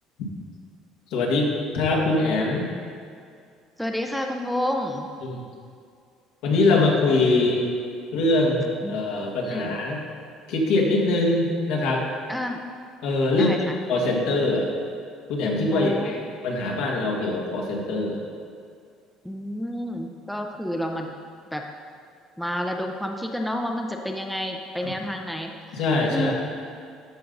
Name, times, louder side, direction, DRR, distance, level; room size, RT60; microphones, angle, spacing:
voice 1, 1.1-2.7 5.2-5.4 6.4-7.7 8.1-10.0 10.5-12.0 13.0-13.6 13.9-14.7 15.3-16.2 16.4-18.2 24.8-24.9 25.7-26.3, left 2 dB, 80° left, -1 dB, 1.8 m, -23 dB
voice 2, 3.8-5.1 8.8-9.0 9.4-9.8 12.3-12.6 13.3-13.8 15.7-16.2 19.2-21.1 21.5-21.6 22.4-25.5 26.1-26.3, equal, ahead, 2 dB, 0.6 m, -29 dB
13.0 x 5.3 x 3.9 m, 2.3 s
cardioid pair, 125°, 0 cm